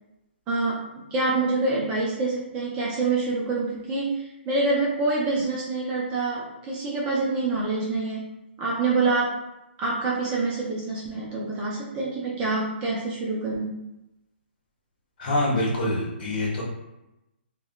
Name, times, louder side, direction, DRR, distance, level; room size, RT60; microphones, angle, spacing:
voice 1, 0.5-8.3 8.6-9.4 9.8-13.9, right 3 dB, 20° right, -5 dB, 0.5 m, -26 dB
voice 2, 15.2-16.6, left 1 dB, 45° left, -4 dB, 1.2 m, -25 dB
3.5 x 2.2 x 2.3 m, 0.92 s
hypercardioid pair, 155°, 6 cm